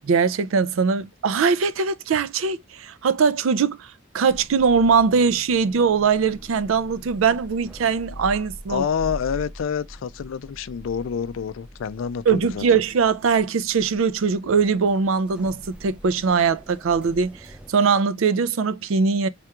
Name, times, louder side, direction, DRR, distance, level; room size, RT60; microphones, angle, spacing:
voice 1, 0.1-3.9 4.1-8.8 12.3-17.4 17.7-19.3, right 5 dB, 80° right, 0.4 m, -21 dB
sound 1, 4.3-17.7, equal, 5° right, 0.4 m, -43 dB
voice 2, 8.7-12.6, left 7 dB, 75° left, 0.4 m, -27 dB
3.4 x 2.9 x 2.2 m
head